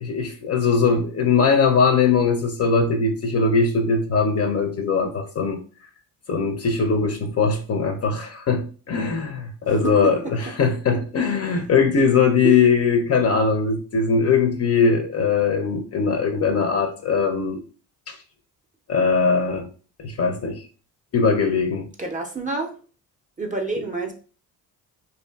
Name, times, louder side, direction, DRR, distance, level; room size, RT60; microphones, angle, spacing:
voice 1, 0.0-5.6 6.3-17.6 18.1-18.2 18.9-19.7 20.0-20.6 21.1-21.9, left 5 dB, 35° left, 5 dB, 0.4 m, -20 dB
voice 2, 11.5-11.8 12.4-12.7 22.0-22.7 23.4-24.1, right 4 dB, 20° right, 2 dB, 0.5 m, -28 dB
2.5 x 2.4 x 2.2 m, 0.38 s
hypercardioid pair, 55°, 44 cm